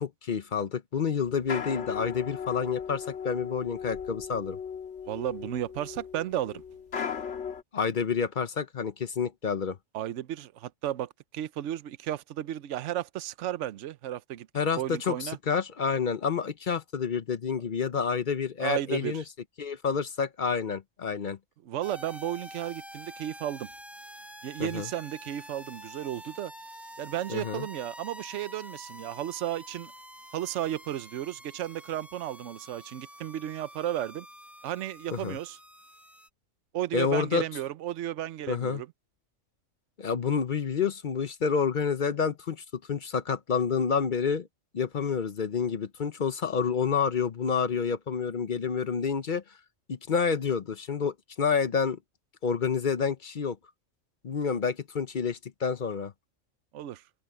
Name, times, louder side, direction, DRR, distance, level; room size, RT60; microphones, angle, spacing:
voice 1, 0.0-4.6 7.7-9.8 14.5-19.2 19.6-21.4 24.6-24.9 27.3-27.7 35.1-35.4 36.9-37.4 38.5-38.8 40.0-44.5 44.7-49.4 49.9-52.0 52.4-53.6 54.2-56.1, left 6 dB, 45° left, 0.8 m, -29 dB
sound 1, 1.3-7.6, left 7 dB, 65° left, 1.9 m, -37 dB
voice 2, 5.1-6.6 9.9-14.5 14.8-15.4 18.6-19.2 21.6-23.7 24.4-26.5 27.0-29.9 30.3-34.3 34.6-35.6 36.7-38.9 56.7-57.0, right 12 dB, 70° right, 1.0 m, -34 dB
sound 2, 21.8-36.3, equal, ahead, 1.1 m, -47 dB
omnidirectional pair, 1.3 m